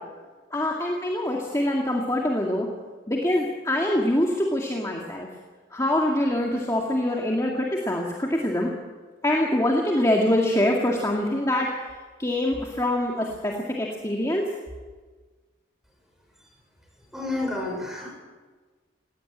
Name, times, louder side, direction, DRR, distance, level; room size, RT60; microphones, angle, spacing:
voice 1, 0.5-2.7 3.1-5.3 5.7-8.7 9.2-11.7 12.2-14.4, left 1 dB, 15° left, -1 dB, 2.0 m, -24 dB
voice 2, 17.1-18.1, left 2 dB, ahead, 0 dB, 5.9 m, -30 dB
18.5 x 16.5 x 8.8 m, 1.4 s
head